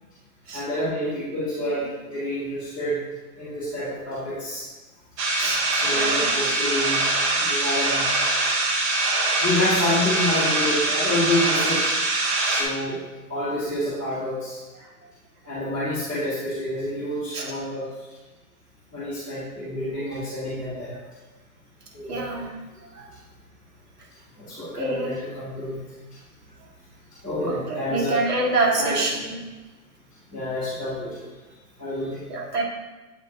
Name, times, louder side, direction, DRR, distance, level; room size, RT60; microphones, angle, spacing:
voice 1, 0.5-3.0 3.4-4.7 5.7-7.0 7.4-8.0 9.4-11.8 12.4-13.0 13.3-14.6 15.4-17.9 18.9-20.9 21.9-22.3 24.4-25.8 27.2-28.2 28.8-29.1 30.3-31.2 31.8-32.2, left 1 dB, 5° right, -18 dB, 0.3 m, -28 dB
sound 1, 5.2-12.6, right 2 dB, 25° right, 0.7 m, -23 dB
voice 2, 5.9-6.3 17.3-17.5 20.1-20.2 22.1-22.5 22.9-23.1 24.7-25.2 27.5-29.3 32.3-32.6, right 2 dB, 80° right, -1 dB, 2.0 m, -26 dB
8.0 x 5.2 x 2.8 m, 1.2 s
hypercardioid pair, 145°, 46 cm